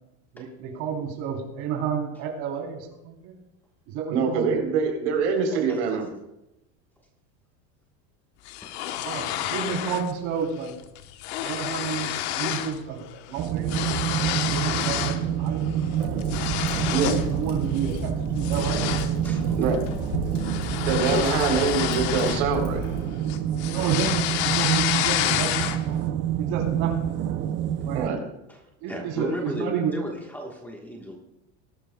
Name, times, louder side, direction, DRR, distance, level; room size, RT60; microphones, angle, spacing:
voice 1, 0.3-3.4 3.9-4.5 9.0-10.7 11.4-12.1 12.4-13.9 14.4-15.7 17.1-18.9 21.3-21.6 23.7-25.8 26.4-27.1 27.8-28.0 28.8-29.9, right 7 dB, 55° right, 2 dB, 3.3 m, -31 dB
voice 2, 4.1-6.1 16.9-17.1 19.6-19.8 20.9-22.8 27.9-28.2, right 5 dB, 80° right, 3 dB, 3.5 m, -24 dB
voice 3, 5.5-5.8 19.2-19.7 28.5-28.6 28.9-31.2, equal, 5° left, 0 dB, 1.2 m, -35 dB
sound 1, 8.5-10.1 10.4-10.7 11.0-12.8 13.1-15.2 15.7-17.3 17.7-18.0 18.4-23.0 23.3-26.0, left 12 dB, 70° left, 1.0 m, -29 dB
sound 2, 13.4-28.1, right 10 dB, 30° right, 0.5 m, -28 dB
Fire, 15.9-23.0, left 1 dB, 35° left, 4.1 m, -34 dB
20.0 x 12.0 x 2.2 m, 0.87 s
cardioid pair, 165°, 35 cm